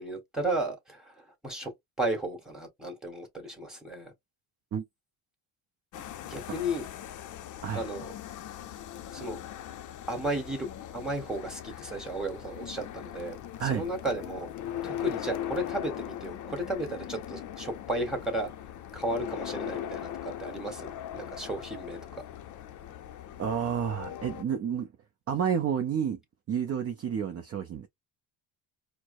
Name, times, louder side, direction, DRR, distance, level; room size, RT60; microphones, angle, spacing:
voice 1, 0.0-1.7 2.0-4.1 6.2-6.9 7.7-8.1 9.1-9.4 10.1-10.7 10.9-14.5 14.8-18.5 18.9-22.0, right 1 dB, ahead, 1.5 m, -34 dB
sound 1, 5.9-24.4, left 11 dB, 45° left, 0.5 m, -40 dB
voice 2, 23.4-24.9 25.3-26.2 26.5-27.9, right 8 dB, 35° right, 0.5 m, -30 dB
4.5 x 2.0 x 2.5 m
cardioid pair, 110°, 42 cm